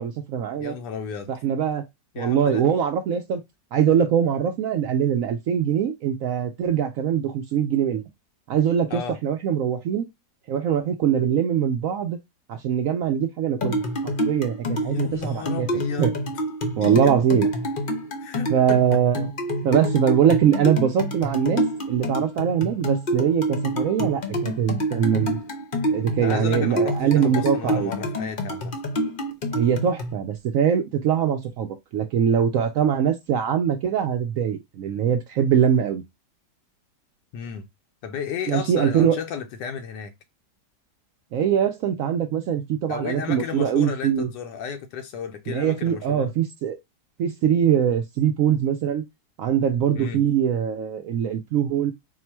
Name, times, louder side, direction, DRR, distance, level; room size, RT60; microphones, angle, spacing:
voice 1, 0.0-0.7 1.3-1.8 2.2-3.4 3.7-8.0 8.5-10.1 10.5-12.2 12.5-15.7 16.0-16.1 16.8-17.5 18.5-19.3 19.6-25.4 25.9-27.9 29.5-36.0 38.5-39.2 41.3-44.3 45.5-46.8 47.2-49.0 49.4-51.9, right 8 dB, 70° right, 0.8 m, -22 dB
voice 2, 0.6-1.3 2.1-2.6 8.9-9.2 14.7-16.3 16.8-17.1 18.2-19.0 26.2-28.7 37.3-37.7 38.0-40.1 42.9-46.3 49.9-50.2, left 7 dB, 80° left, 1.2 m, -33 dB
sound 1, 13.6-30.1, equal, 45° left, 0.7 m, -27 dB
4.4 x 2.1 x 4.4 m
omnidirectional pair, 1.9 m